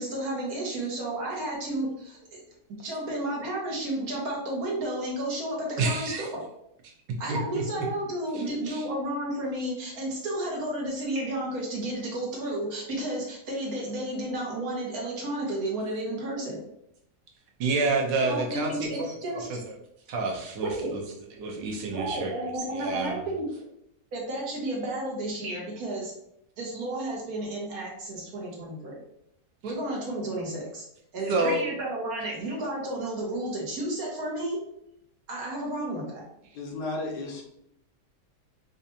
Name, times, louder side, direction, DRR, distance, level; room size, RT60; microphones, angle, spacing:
voice 1, 0.0-2.4 2.8-6.3 7.2-16.6 18.2-19.5 20.6-20.9 21.9-23.5 24.1-26.1 26.6-29.0 29.6-30.9 31.1-34.6 35.3-36.2, right 1 dB, 60° right, -2 dB, 1.5 m, -32 dB
voice 2, 5.8-6.3 7.3-7.6 8.3-8.8 17.6-19.1 19.5-19.6 20.1-21.0 21.4-22.5 22.7-23.2 31.3-31.6, right 3 dB, 85° right, 0 dB, 1.4 m, -29 dB
voice 3, 36.5-37.4, left 2 dB, 70° left, 0 dB, 1.4 m, -33 dB
5.2 x 2.5 x 2.7 m, 0.77 s
omnidirectional pair, 1.9 m